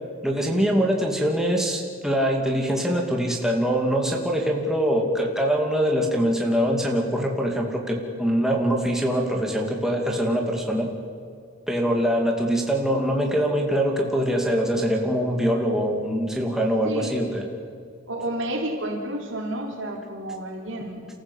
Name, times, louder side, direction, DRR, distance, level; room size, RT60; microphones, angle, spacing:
voice 1, 0.2-10.9 11.7-17.5, equal, ahead, 0 dB, 2.5 m, -23 dB
voice 2, 16.8-17.3 18.1-21.1, right 1 dB, 60° right, 1 dB, 3.8 m, -31 dB
29.5 x 14.5 x 8.2 m, 2.3 s
head